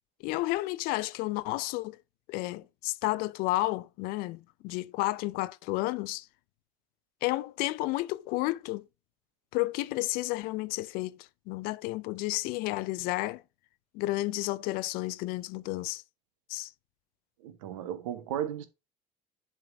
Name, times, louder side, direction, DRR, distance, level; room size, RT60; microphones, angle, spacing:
voice 1, 0.2-2.0 2.3-6.3 7.2-8.9 9.5-13.4 13.9-16.0 16.5-16.7, left 19 dB, 60° left, 0.5 m, -31 dB
voice 2, 17.4-18.7, right 10 dB, 75° right, 1.0 m, -35 dB
10.5 x 3.8 x 3.5 m
hypercardioid pair, 65°, 17 cm